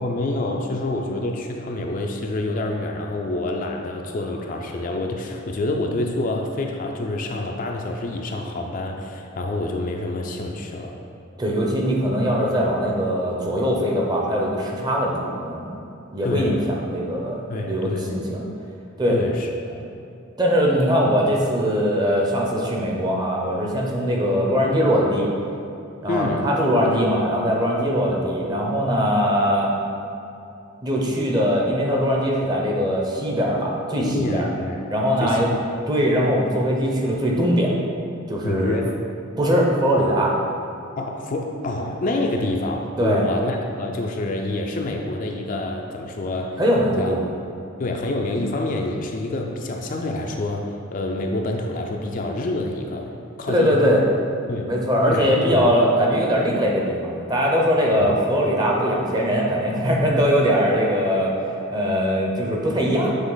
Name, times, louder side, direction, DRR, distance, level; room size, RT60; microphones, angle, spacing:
voice 1, 0.0-11.0 16.2-16.7 17.5-18.2 19.1-19.8 26.1-26.5 34.0-34.9 35.2-35.4 38.4-39.0 41.0-46.6 47.0-47.1 47.8-53.8 54.5-54.7 55.1-55.7 58.0-58.2, left 2 dB, 40° left, 1 dB, 0.4 m, -27 dB
voice 2, 11.4-15.8 16.1-18.5 19.0-19.2 20.4-25.3 26.0-29.7 30.8-34.5 34.9-35.5 35.9-37.7 38.3-38.8 39.4-40.3 43.0-43.3 46.6-47.3 53.5-54.0 54.7-61.3 61.7-63.1, equal, 20° right, -2 dB, 0.7 m, -21 dB
7.3 x 3.4 x 3.9 m, 2.7 s
head